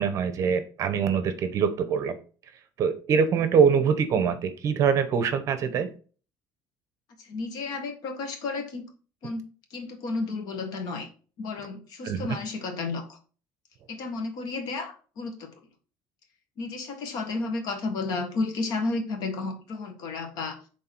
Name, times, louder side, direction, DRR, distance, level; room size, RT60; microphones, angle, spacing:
voice 1, 0.0-2.2 2.8-5.9 12.0-12.4, right 6 dB, 40° right, 10 dB, 0.8 m, -24 dB
voice 2, 7.2-8.8 9.2-9.4 9.7-11.1 11.4-13.2 13.9-15.5 16.6-20.6, left 3 dB, 55° left, 4 dB, 1.5 m, -32 dB
6.5 x 4.0 x 4.4 m, 0.38 s
cardioid pair, 155°, 8 cm